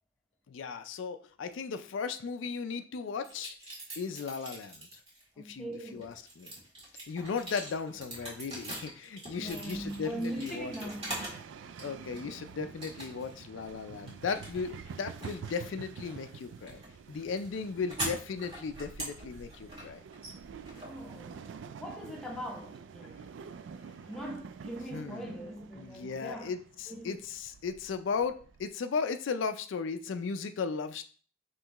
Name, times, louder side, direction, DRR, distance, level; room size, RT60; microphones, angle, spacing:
voice 1, 0.5-3.5 4.0-5.0 5.4-6.5 7.1-10.7 11.8-16.8 17.1-20.0 24.9-25.4 25.8-31.0, left 5 dB, 90° left, 0.4 m, -36 dB
sound 1, 3.2-5.2 5.7-11.5 11.8-12.4 12.8-13.4 13.7-21.6, right 1 dB, 30° right, 1.7 m, -43 dB
voice 2, 5.3-6.1 9.4-11.3 20.7-21.4 21.8-23.2 23.7-26.5 26.9-27.2, right 1 dB, ahead, 0.8 m, -41 dB
sound 2, 9.4-28.7, right 6 dB, 80° right, 0.3 m, -48 dB
5.6 x 3.1 x 3.0 m
head